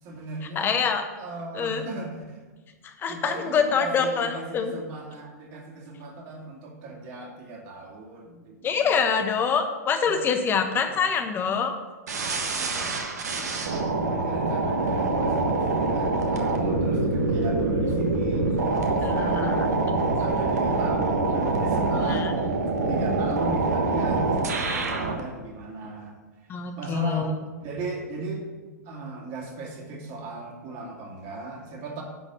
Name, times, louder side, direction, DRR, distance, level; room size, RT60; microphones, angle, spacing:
voice 1, 0.0-0.9 1.1-2.5 3.1-9.0 10.1-10.2 10.8-11.1 12.4-13.0 13.2-13.7 14.0-22.3 22.9-27.4 27.6-28.5 28.8-32.0, right 3 dB, 45° right, -1 dB, 2.7 m, -38 dB
voice 2, 0.6-1.0 1.5-1.8 2.8-4.7 8.6-11.7 19.0-19.9 22.1-22.3 26.5-27.3, left 6 dB, 25° left, 6 dB, 1.1 m, -25 dB
sound 1, 12.1-25.2, right 3 dB, 75° right, 1.3 m, -25 dB
11.0 x 4.2 x 6.9 m, 1.3 s
hypercardioid pair, 110°, 9 cm